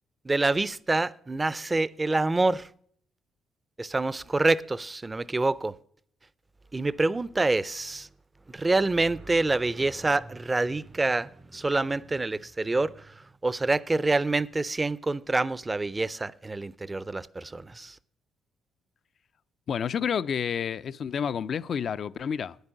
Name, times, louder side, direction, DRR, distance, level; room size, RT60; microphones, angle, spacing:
voice 1, 0.2-2.7 3.8-5.7 6.7-8.1 8.5-18.0, right 2 dB, 20° right, 0.5 m, -27 dB
voice 2, 19.7-22.6, left 7 dB, 55° left, 0.4 m, -29 dB
9.6 x 8.1 x 8.8 m
cardioid pair, 85°, 0 cm